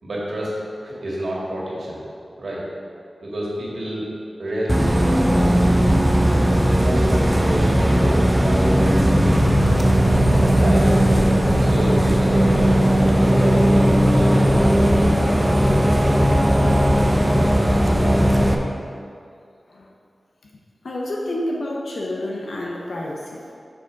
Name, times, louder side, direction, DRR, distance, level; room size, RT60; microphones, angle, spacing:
voice 1, 0.0-2.0 2.4-2.7 3.2-4.1 4.4-5.8 6.5-9.6 10.4-11.1 11.6-12.8 13.3-14.7, equal, 75° right, -5 dB, 2.0 m, -29 dB
Bus, 4.7-18.6, equal, 15° right, 0.6 m, -17 dB
voice 2, 20.8-23.6, left 1 dB, 80° left, -3 dB, 0.9 m, -29 dB
6.5 x 4.9 x 5.9 m, 2.4 s
wide cardioid pair, 90°, 0 cm